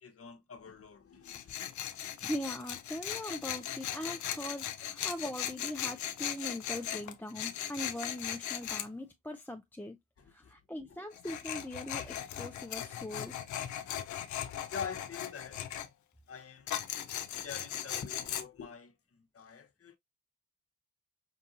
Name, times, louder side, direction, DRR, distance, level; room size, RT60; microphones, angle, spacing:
voice 1, 0.0-1.6 10.2-10.5 14.7-15.6 16.3-16.7 17.4-20.0, left 6 dB, 50° left, 0.9 m, -45 dB
Tools, 1.3-8.9 11.1-15.9 16.7-18.4, left 10 dB, 80° left, 0.6 m, -38 dB
voice 2, 2.2-10.0 10.3-13.4, left 1 dB, 5° left, 0.6 m, -41 dB
5.7 x 2.7 x 2.5 m
supercardioid pair, 40°, 29 cm